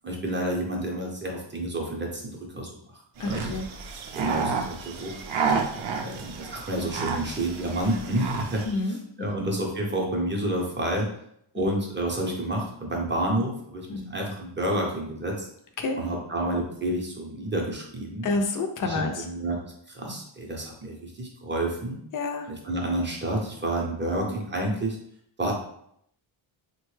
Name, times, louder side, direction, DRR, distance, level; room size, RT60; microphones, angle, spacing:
voice 1, 0.0-3.5 4.2-5.1 5.8-8.6 9.2-11.1 11.5-15.5 16.0-18.3 18.9-19.6 19.9-22.0 22.7-25.0 25.4-25.5, right 1 dB, 25° right, 0 dB, 0.5 m, -29 dB
voice 2, 3.2-3.7 8.6-9.4 11.5-11.7 13.9-14.1 15.8-16.0 18.2-19.3 22.1-22.5 24.1-24.3, left 3 dB, 45° left, 5 dB, 0.4 m, -29 dB
sound 1, 3.2-8.7, right 5 dB, 75° right, 0.5 m, -31 dB
3.5 x 2.2 x 3.1 m, 0.70 s
wide cardioid pair, 155°, 48 cm